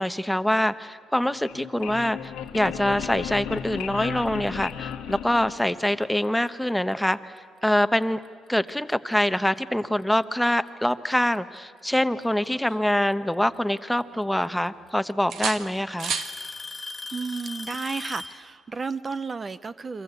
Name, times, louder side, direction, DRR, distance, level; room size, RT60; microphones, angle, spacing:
voice 1, 0.0-7.3 7.6-8.2 8.5-16.1, left 1 dB, 5° left, 12 dB, 1.0 m, -25 dB
sound 1, 1.3-6.0, left 9 dB, 90° left, 1.4 m, -35 dB
Alarm / Tick-tock, 4.5-4.7 5.6-5.7 6.5-6.6 8.2-8.3 9.6-9.7 10.9-11.4 13.1-13.2 14.4-14.5 14.9-15.3 16.0-18.4, left 3 dB, 25° left, 1.6 m, -38 dB
sound 2, 12.2-13.7 14.1-14.9 15.3-16.4 18.2-18.4, right 7 dB, 70° right, 1.7 m, -35 dB
voice 2, 17.1-20.0, right 4 dB, 30° right, 15 dB, 0.6 m, -32 dB
29.5 x 24.0 x 8.2 m, 2.3 s
cardioid pair, 90°, 0 cm